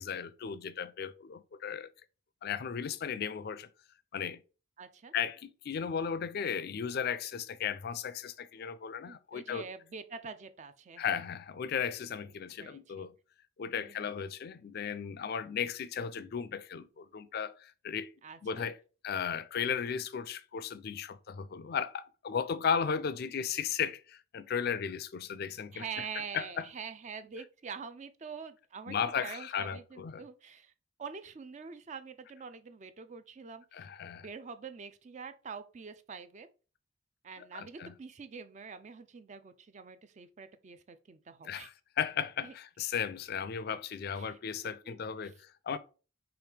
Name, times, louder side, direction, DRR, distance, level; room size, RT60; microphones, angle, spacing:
voice 1, 0.0-1.9 2.4-3.7 4.1-4.4 5.1-9.7 11.0-13.1 13.6-18.1 18.4-18.8 19.0-26.0 26.3-26.7 28.9-30.2 33.7-34.3 37.5-37.9 41.4-45.8, left 7 dB, 55° left, 0.4 m, -35 dB
voice 2, 4.8-5.1 9.1-11.0 12.6-13.1 13.8-14.2 18.2-18.7 25.7-30.7 31.0-33.9 34.2-36.5 37.2-41.7 42.4-42.5 44.1-45.3, right 5 dB, 35° right, 0.4 m, -45 dB
4.9 x 3.0 x 3.3 m
head